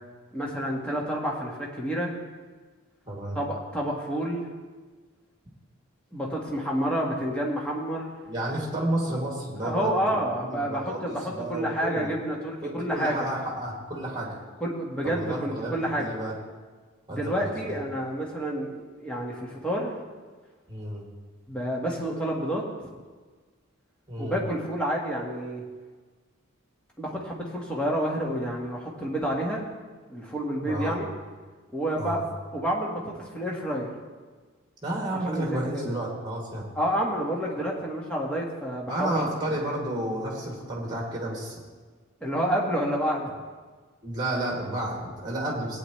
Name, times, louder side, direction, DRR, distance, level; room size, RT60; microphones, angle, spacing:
voice 1, 0.3-2.1 3.3-4.5 6.1-8.1 9.6-13.2 14.6-16.1 17.1-19.9 21.5-22.9 24.2-25.6 27.0-29.6 30.1-31.1 31.7-32.2 32.5-33.9 35.2-35.9 36.7-39.3 42.2-43.3, equal, 5° left, -3 dB, 1.7 m, -29 dB
voice 2, 3.1-3.4 8.3-12.1 12.6-14.4 15.0-16.3 17.1-17.8 20.7-21.1 24.1-24.4 30.6-31.0 31.9-32.2 34.8-36.6 38.9-41.6 44.0-45.8, right 1 dB, 20° right, -3 dB, 2.6 m, -31 dB
17.0 x 9.6 x 3.3 m, 1.4 s
head